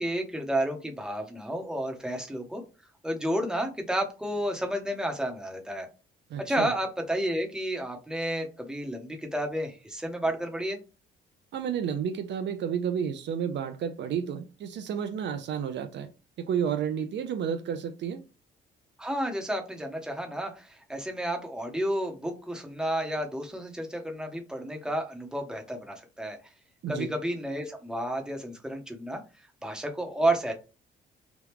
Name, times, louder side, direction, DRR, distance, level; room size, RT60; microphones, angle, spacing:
voice 1, 0.0-2.6 3.0-5.9 6.4-10.8 19.0-26.4 26.9-29.2 29.6-30.5, right 1 dB, 5° right, 0.9 m, -31 dB
voice 2, 6.3-6.7 11.5-16.1 16.5-18.2 26.8-27.1, right 8 dB, 65° right, 0.5 m, -31 dB
2.9 x 2.3 x 3.4 m
cardioid pair, 90°, 20 cm